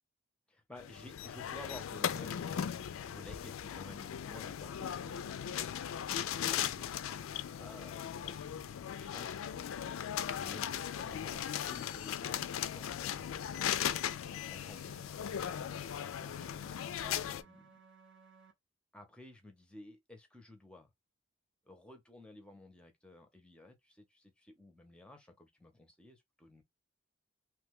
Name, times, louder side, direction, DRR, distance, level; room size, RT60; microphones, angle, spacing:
voice 1, 0.5-17.8 18.9-20.9 21.7-26.6, left 2 dB, 5° left, 0.6 m, -54 dB
sound 1, 0.8-17.4, left 9 dB, 80° left, 0.3 m, -38 dB
sound 2, 14.4-18.5, right 5 dB, 55° right, 0.7 m, -60 dB
3.0 x 2.2 x 3.5 m
head